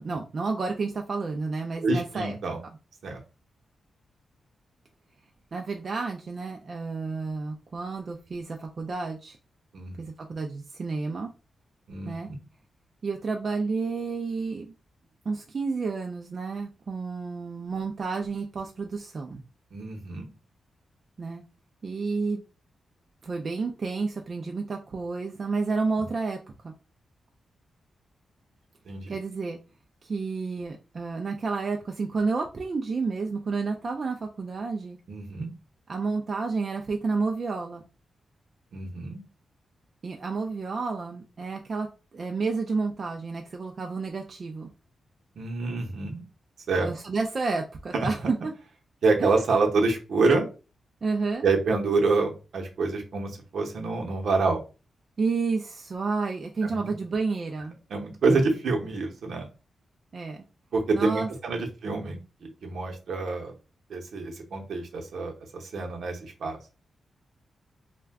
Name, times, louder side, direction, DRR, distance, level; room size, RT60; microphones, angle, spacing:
voice 1, 0.0-2.4 5.5-9.4 10.0-11.3 12.0-12.3 13.0-14.7 15.3-19.4 21.2-21.4 21.8-22.4 23.2-26.4 26.6-26.7 29.1-29.6 30.0-35.0 35.9-37.9 40.0-41.9 42.1-44.7 46.8-48.4 49.2-49.4 51.0-51.5 55.2-57.8 60.1-60.4 60.9-61.3, right 4 dB, 45° right, 2 dB, 0.4 m, -30 dB
voice 2, 1.8-2.6 3.0-3.2 9.7-10.1 11.9-12.4 19.7-20.3 26.0-26.1 28.8-29.1 35.1-35.5 38.7-39.2 45.4-46.2 46.7-46.9 47.9-48.1 49.0-50.5 51.4-54.6 56.6-56.9 57.9-59.5 60.7-63.5 63.9-66.6, right 3 dB, 75° right, 2 dB, 0.8 m, -27 dB
2.4 x 2.2 x 3.4 m, 0.31 s
cardioid pair, 95°, 0 cm